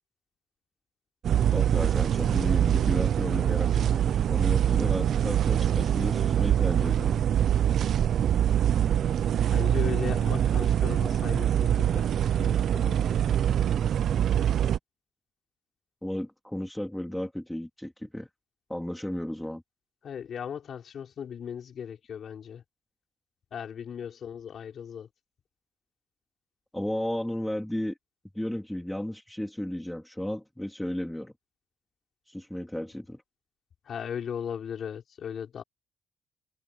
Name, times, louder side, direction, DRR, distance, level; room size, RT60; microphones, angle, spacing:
sound 1, 1.2-14.8, right 10 dB, 65° right, 0.6 m, -24 dB
voice 1, 1.5-7.2 16.0-18.3 18.7-19.6 26.7-27.9 28.3-31.3 32.3-33.2, left 1 dB, 5° left, 3.6 m, -34 dB
voice 2, 9.5-13.1 20.0-22.6 23.5-25.1 33.9-35.6, left 8 dB, 60° left, 5.7 m, -37 dB
cardioid pair, 90°, 0 cm